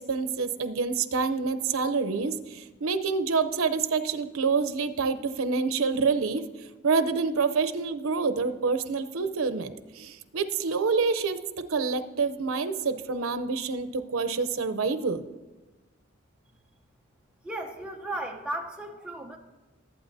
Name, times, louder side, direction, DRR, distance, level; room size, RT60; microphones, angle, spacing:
voice 1, 0.0-6.4 6.8-11.4 11.7-15.2, right 4 dB, 85° right, 12 dB, 0.7 m, -27 dB
voice 2, 17.4-19.4, right 1 dB, 5° right, 1 dB, 0.8 m, -35 dB
20.0 x 8.6 x 2.7 m, 1.1 s
head